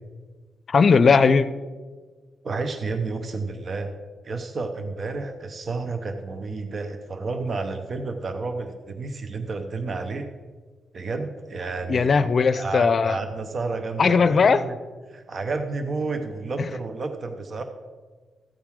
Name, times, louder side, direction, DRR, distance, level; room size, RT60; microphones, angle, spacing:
voice 1, 0.7-1.5 11.9-13.2 14.0-14.6 16.6-16.7, left 5 dB, 55° left, 14 dB, 0.5 m, -18 dB
voice 2, 2.4-3.9 4.2-10.3 10.9-12.1 12.5-14.7 15.1-17.6, right 3 dB, 50° right, 7 dB, 0.9 m, -31 dB
14.0 x 9.0 x 3.7 m, 1.4 s
cardioid pair, 75°, 0 cm